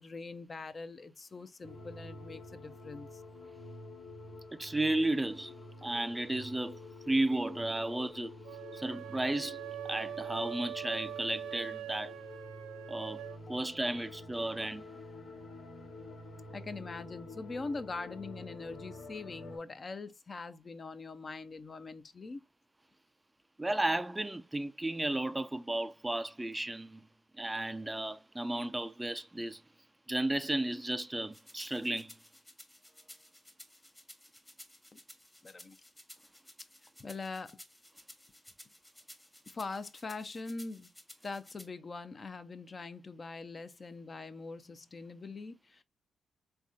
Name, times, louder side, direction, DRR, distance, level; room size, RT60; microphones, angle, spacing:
voice 1, 0.0-3.2 13.5-13.6 16.5-22.4 34.9-35.0 35.4-35.8 37.0-37.6 39.5-40.9 41.2-45.8, left 3 dB, 40° left, 0.6 m, -43 dB
sound 1, 1.6-19.6, left 2 dB, 90° left, 1.2 m, -49 dB
voice 2, 4.5-5.5 5.8-6.8 7.1-8.3 8.7-9.6 9.8-12.1 12.9-13.2 13.5-14.8 23.6-27.0 27.4-29.6 30.1-32.1, right 1 dB, 15° right, 0.3 m, -33 dB
sound 2, 8.4-13.4, right 11 dB, 85° right, 0.4 m, -43 dB
sound 3, 31.3-41.7, left 1 dB, 15° left, 1.0 m, -55 dB
3.4 x 3.3 x 2.6 m
supercardioid pair, 50°, 0 cm